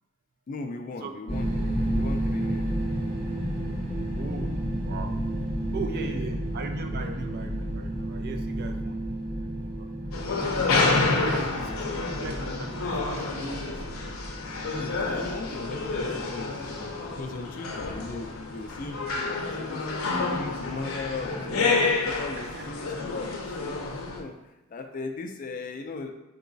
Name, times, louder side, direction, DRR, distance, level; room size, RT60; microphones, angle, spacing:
voice 1, 0.5-2.7 5.4-5.6 5.9-6.2 11.6-11.9 14.7-24.3 24.7-26.1, left 3 dB, 40° left, 5 dB, 0.3 m, -38 dB
sound 1, 1.3-17.1, right 1 dB, 30° right, 1.3 m, -32 dB
voice 2, 4.1-5.2 5.7-9.1 9.4-9.9 11.1-14.1 15.0-15.3 22.4-22.8, right 4 dB, 50° right, 6 dB, 0.3 m, -39 dB
sound 2, 10.1-24.2, left 3 dB, 90° left, 0.5 m, -29 dB
4.6 x 2.9 x 2.6 m, 0.96 s
head